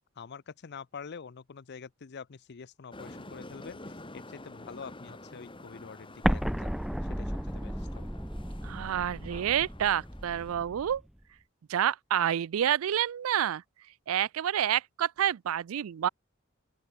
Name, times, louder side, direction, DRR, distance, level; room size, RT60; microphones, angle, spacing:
voice 1, 0.2-3.8 4.1-6.7 7.2-8.1, left 5 dB, 55° left, 0.6 m, -46 dB
sound 1, 2.9-10.6, left 2 dB, 25° left, 3.3 m, -49 dB
Explosion, 6.2-11.0, equal, ahead, 0.4 m, -33 dB
voice 2, 8.6-11.0 11.7-13.6 14.1-16.1, right 10 dB, 85° right, 0.4 m, -28 dB
open air
head